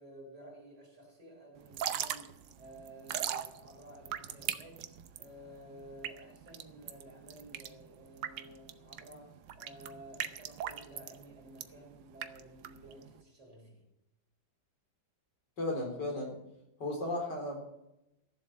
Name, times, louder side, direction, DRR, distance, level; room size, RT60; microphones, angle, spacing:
voice 1, 0.0-4.9 5.2-13.8, right 1 dB, 40° right, -1 dB, 4.4 m, -53 dB
Drip / Trickle dribble, 1.6-13.2, right 10 dB, 80° right, 1.4 m, -40 dB
voice 2, 15.6-16.4 16.8-17.6, left 2 dB, 70° left, 1 dB, 4.1 m, -35 dB
14.0 x 7.6 x 7.3 m, 0.88 s
omnidirectional pair, 1.9 m